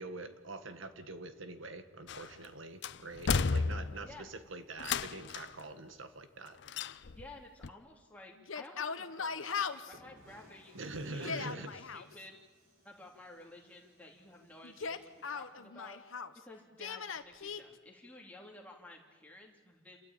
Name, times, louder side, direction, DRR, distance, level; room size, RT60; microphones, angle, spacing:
voice 1, 0.0-6.6 10.7-11.8, right 2 dB, 75° right, 9 dB, 1.7 m, -45 dB
sound 1, 2.1-2.5 2.8-4.2 4.8-5.6 6.7-7.3 7.6-7.7, left 5 dB, 60° left, 0.6 m, -33 dB
voice 2, 7.0-12.4 12.8-16.0 16.4-20.0, left 2 dB, 5° left, -1 dB, 2.9 m, -53 dB
Yell, 8.4-10.0 11.1-12.1 14.6-16.4 16.8-17.6, left 6 dB, 80° left, 1.1 m, -39 dB
sound 2, 9.1-9.2 9.9-15.5, equal, 45° right, 6.4 m, -62 dB
28.0 x 13.5 x 8.9 m, 1.4 s
head